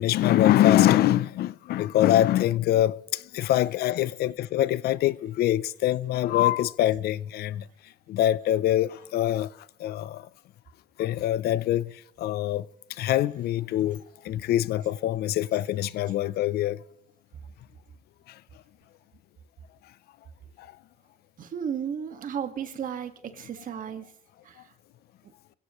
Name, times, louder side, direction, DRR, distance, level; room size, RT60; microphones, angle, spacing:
voice 1, 0.0-7.6 8.1-9.5 9.8-10.3 11.0-11.9 12.2-12.7 13.0-16.8 20.6-20.7, left 13 dB, 70° left, 0.6 m, -24 dB
voice 2, 21.4-24.1 24.4-24.7, right 8 dB, 55° right, 1.8 m, -34 dB
26.0 x 17.0 x 3.1 m
cardioid pair, 110°, 17 cm